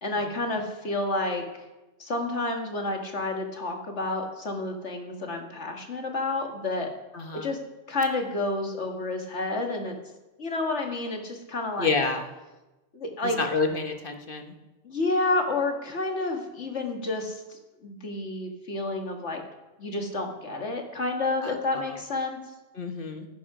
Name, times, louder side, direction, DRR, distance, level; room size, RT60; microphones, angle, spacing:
voice 1, 0.0-1.4 2.0-6.9 7.3-7.6 7.9-10.0 10.4-11.9 12.9-13.4 14.8-19.4 19.8-22.4, left 2 dB, 70° left, 3 dB, 2.3 m, -30 dB
voice 2, 7.1-7.5 11.8-12.2 13.2-14.5 21.4-22.0 22.7-23.3, left 4 dB, 45° left, 6 dB, 1.5 m, -29 dB
15.5 x 11.0 x 5.0 m, 1.1 s
omnidirectional pair, 1.2 m